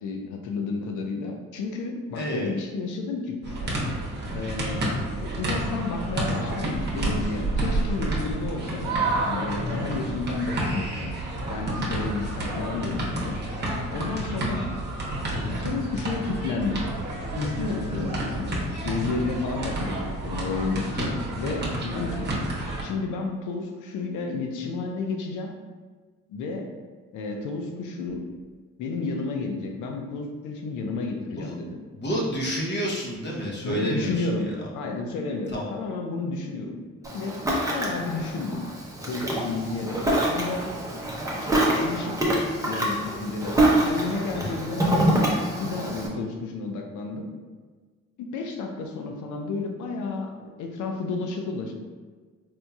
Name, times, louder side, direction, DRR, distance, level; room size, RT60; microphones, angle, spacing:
voice 1, 0.0-3.8 4.3-4.9 5.2-11.2 11.5-13.4 13.9-14.7 15.4-16.8 17.4-18.6 18.8-22.3 22.8-25.5 26.3-26.7 27.1-28.2 28.8-31.8 33.6-37.4 37.7-38.7 39.1-40.0 40.3-40.7 41.4-42.2 42.6-44.9 45.5-47.3 48.2-51.7, left 3 dB, 80° left, 3 dB, 0.6 m, -31 dB
voice 2, 2.1-2.5 14.4-14.7 31.4-31.5 31.9-34.3 34.6-34.7 35.5-35.7 44.3-44.5, right 1 dB, 35° left, -3 dB, 1.0 m, -29 dB
sound 1, 3.4-22.8, right 1 dB, 35° right, 1.0 m, -29 dB
Ocean, 37.0-46.1, right 1 dB, 10° right, 0.7 m, -25 dB
4.4 x 2.6 x 2.3 m, 1.4 s
cardioid pair, 90°, 30 cm